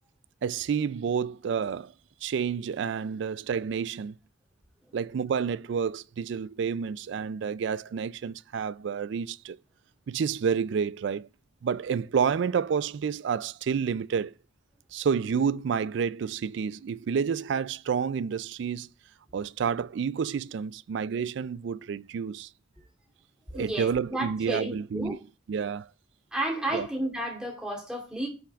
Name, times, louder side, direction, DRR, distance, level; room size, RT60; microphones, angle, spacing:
voice 1, 0.4-1.9 2.2-4.2 4.9-9.6 10.1-11.3 11.6-14.3 14.9-18.9 19.3-22.5 23.5-25.2 25.5-25.9 26.7-26.9, right 6 dB, 60° right, 0.3 m, -29 dB
voice 2, 23.5-25.2 26.3-28.3, right 1 dB, 5° right, 2.8 m, -32 dB
16.5 x 5.7 x 2.4 m
head